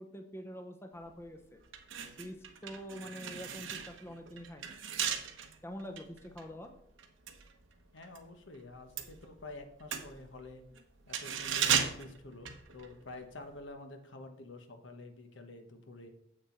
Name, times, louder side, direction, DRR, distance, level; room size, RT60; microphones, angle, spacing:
voice 1, 0.0-1.6 2.2-4.7 5.6-6.7, equal, 15° left, 5 dB, 0.7 m, -45 dB
sound 1, 1.1-1.2 1.6-8.3 8.5-13.2 13.5-13.6, right 8 dB, 85° right, 1.0 m, -37 dB
voice 2, 7.9-10.6 11.1-16.1, left 2 dB, 75° left, 6 dB, 1.1 m, -49 dB
7.7 x 6.5 x 4.4 m, 0.73 s
head